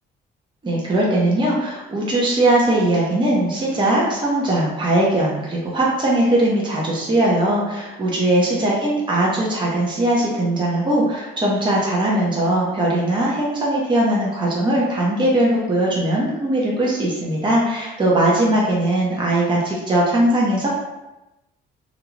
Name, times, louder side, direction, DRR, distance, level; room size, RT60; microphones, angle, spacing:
voice 1, 0.6-20.7, right 1 dB, 25° right, -4 dB, 0.7 m, -20 dB
2.5 x 2.2 x 3.1 m, 0.99 s
cardioid pair, 90°, 20 cm